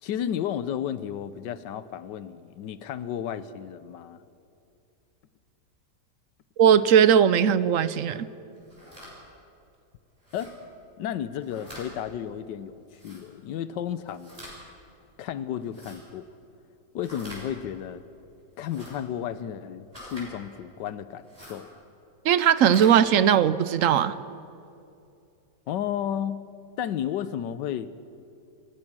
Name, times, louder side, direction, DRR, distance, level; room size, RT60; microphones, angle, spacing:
voice 1, 0.0-4.2 10.3-10.5 11.0-14.3 15.2-16.3 16.9-18.0 18.6-21.7 25.7-26.4 26.8-27.9, left 9 dB, 80° left, 14 dB, 1.4 m, -33 dB
voice 2, 6.6-8.3 22.2-24.2, right 8 dB, 65° right, 15 dB, 0.8 m, -19 dB
sound 1, 8.6-9.1 10.2-10.5 11.3-11.9 12.9-13.2 14.1-14.6 15.6-16.0 17.0-17.4 18.6-18.9 19.9-20.3 21.2-21.6 22.5-22.9, equal, 20° right, 6.9 m, -45 dB
28.0 x 16.0 x 6.2 m, 2.6 s
omnidirectional pair, 1.9 m